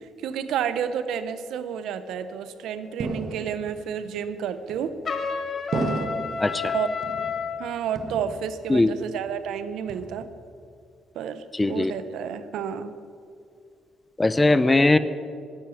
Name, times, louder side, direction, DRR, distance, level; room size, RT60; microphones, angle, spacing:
voice 1, 0.2-5.0 6.7-6.9 7.6-10.3 11.1-12.9, right 8 dB, 80° right, 12 dB, 0.8 m, -30 dB
sound 1, 3.0-3.8 4.7-5.2 5.7-6.5 7.0-7.6 7.9-8.7 9.0-9.5 9.9-10.5, right 3 dB, 50° right, 1.3 m, -33 dB
Trumpet, 5.0-7.6, left 6 dB, 45° left, 1.4 m, -30 dB
voice 2, 6.4-6.7 8.7-8.9 11.5-11.9 14.2-15.0, left 2 dB, 15° left, 14 dB, 0.6 m, -20 dB
11.5 x 7.9 x 9.5 m, 2.4 s
cardioid pair, 90°, 0 cm